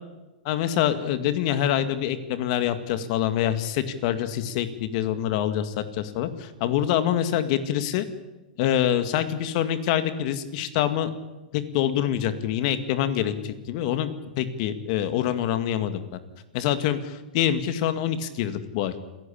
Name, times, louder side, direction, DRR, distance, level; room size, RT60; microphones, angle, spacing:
voice 1, 0.4-8.1 8.6-11.1 11.5-14.1 14.4-16.0 16.5-18.9, left 10 dB, 50° left, 10 dB, 2.1 m, -25 dB
29.0 x 11.0 x 8.7 m, 1.1 s
hypercardioid pair, 140°, 5 cm